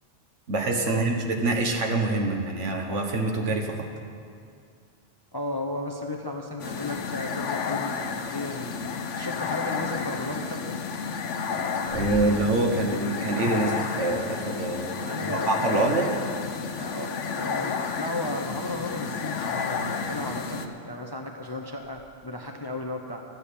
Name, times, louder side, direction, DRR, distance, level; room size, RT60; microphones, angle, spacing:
voice 1, 0.5-3.9 11.9-16.1, right 2 dB, 80° right, 2 dB, 1.7 m, -26 dB
voice 2, 5.3-8.7 9.2-10.8 15.0-15.9 16.7-23.2, left 2 dB, 25° left, 2 dB, 0.7 m, -34 dB
sound 1, 6.6-20.7, left 5 dB, 85° left, 1.1 m, -31 dB
sound 2, 11.4-12.5 12.8-12.9 13.8-14.5 16.3-16.5 16.9-17.2 17.5-17.6 18.4-18.5 20.2-22.4, left 1 dB, 45° right, 2.2 m, -42 dB
12.5 x 8.1 x 8.4 m, 2.3 s
omnidirectional pair, 1.2 m